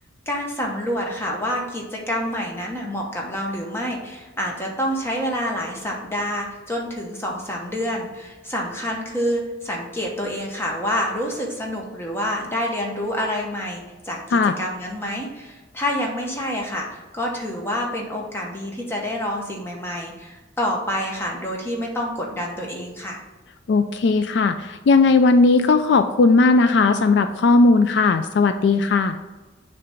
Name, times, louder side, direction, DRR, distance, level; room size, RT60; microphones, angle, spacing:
voice 1, 0.3-23.2, equal, 10° left, -1 dB, 1.0 m, -27 dB
voice 2, 23.7-29.2, left 3 dB, 60° left, 9 dB, 0.3 m, -17 dB
6.7 x 3.3 x 5.2 m, 1.2 s
head